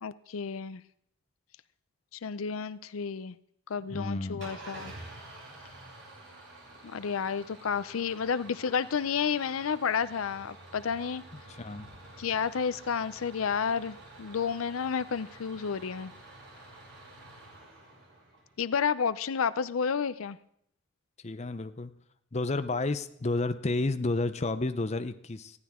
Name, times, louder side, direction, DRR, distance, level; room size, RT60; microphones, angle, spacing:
voice 1, 0.0-0.8 2.1-3.4 3.7-4.9 6.8-11.2 12.2-16.1 18.6-20.4, left 6 dB, 90° left, 16 dB, 0.5 m, -31 dB
voice 2, 3.9-4.4 11.6-11.9 21.2-21.9 22.3-25.5, left 2 dB, 30° left, 10 dB, 0.6 m, -31 dB
Engine starting / Idling, 4.4-18.6, right 2 dB, 65° right, 7.1 m, -49 dB
19.5 x 14.0 x 3.7 m, 0.71 s
head